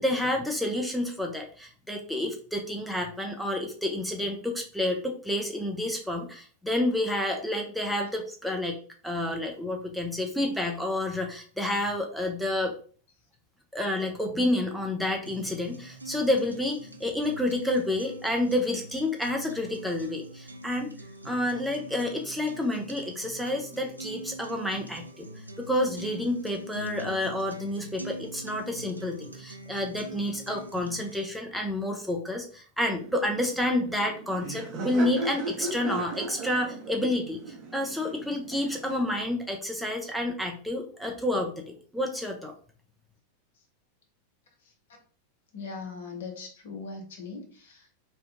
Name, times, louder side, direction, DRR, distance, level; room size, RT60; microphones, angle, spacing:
voice 1, 0.0-8.8 9.0-12.7 13.7-20.9 21.2-42.5, left 1 dB, ahead, 1 dB, 0.5 m, -29 dB
sound 1, 15.3-31.3, right 1 dB, 85° right, 0.4 m, -43 dB
Laughter, 33.0-39.2, right 2 dB, 35° right, 0.7 m, -37 dB
voice 2, 45.5-47.9, left 4 dB, 60° left, 3 dB, 0.8 m, -40 dB
2.8 x 2.2 x 3.5 m, 0.43 s
figure-of-eight pair, 90°, 0 cm